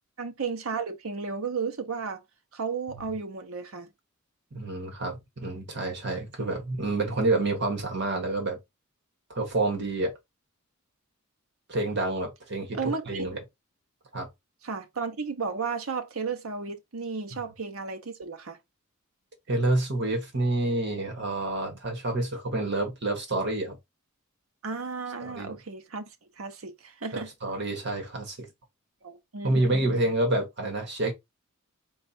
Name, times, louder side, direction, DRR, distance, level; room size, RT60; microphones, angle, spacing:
voice 1, 0.2-2.2 2.5-3.9 12.7-13.3 14.6-18.6 24.6-26.0 26.4-27.3 29.0-30.1, right 5 dB, 70° right, 0.8 m, -34 dB
voice 2, 4.5-8.6 9.3-10.1 11.7-13.4 14.1-14.3 17.3-17.4 19.5-23.8 25.2-25.5 27.1-28.5 29.4-31.1, right 2 dB, 55° right, 1.5 m, -28 dB
4.3 x 2.4 x 4.2 m
head